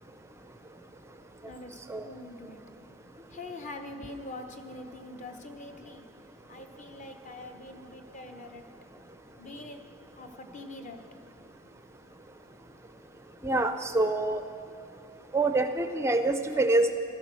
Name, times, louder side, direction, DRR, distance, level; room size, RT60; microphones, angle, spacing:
voice 1, 1.4-2.6 3.3-6.1 6.5-8.6 9.4-9.9 10.2-11.1, left 2 dB, 35° left, 5 dB, 1.0 m, -44 dB
voice 2, 13.4-14.4 15.3-16.9, right 2 dB, 10° right, 8 dB, 0.4 m, -25 dB
15.5 x 13.0 x 6.2 m, 2.5 s
head